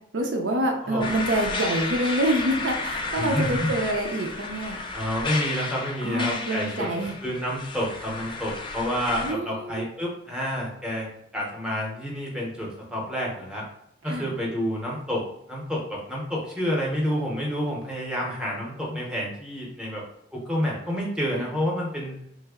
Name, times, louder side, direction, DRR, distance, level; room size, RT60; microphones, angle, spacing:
voice 1, 0.1-4.8 6.0-7.1 9.2-9.8 14.0-14.3 21.4-21.5, right 1 dB, 75° right, 2 dB, 0.6 m, -26 dB
sound 1, 1.0-9.3, left 3 dB, 25° left, 0.4 m, -32 dB
voice 2, 3.2-3.7 4.9-11.1 11.3-13.6 14.0-15.2 15.5-20.0 20.3-22.2, equal, 5° right, -3 dB, 0.7 m, -29 dB
3.1 x 2.0 x 3.5 m, 0.76 s
head